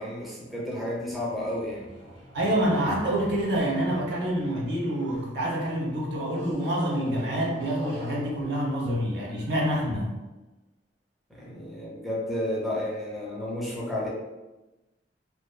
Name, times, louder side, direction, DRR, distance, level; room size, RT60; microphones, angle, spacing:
voice 1, 0.0-1.9 11.3-14.1, left 1 dB, ahead, -5 dB, 0.5 m, -32 dB
sound 1, 0.9-5.4 6.2-9.8, left 1 dB, 85° right, 1.4 m, -45 dB
voice 2, 2.3-10.2, right 1 dB, 65° right, -3 dB, 0.7 m, -27 dB
2.5 x 2.3 x 2.2 m, 1.1 s
head